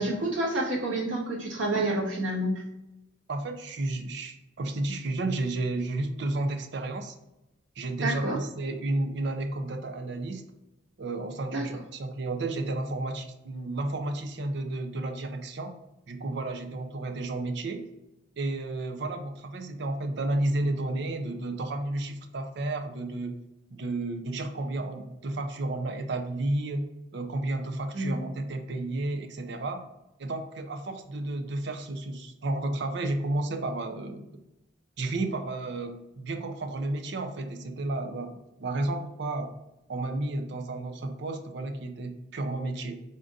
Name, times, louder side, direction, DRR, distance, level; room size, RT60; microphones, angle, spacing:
voice 1, 0.0-2.6 8.0-8.4 11.5-11.6 27.9-28.2, right 1 dB, 85° right, -5 dB, 1.4 m, -28 dB
voice 2, 3.3-7.1 7.8-10.4 11.0-15.7 16.1-17.9 18.4-23.3 23.7-26.9 27.1-29.8 30.2-34.3 35.0-39.5 39.9-43.0, right 2 dB, 65° right, 6 dB, 0.5 m, -32 dB
3.7 x 2.5 x 3.8 m, 0.91 s
head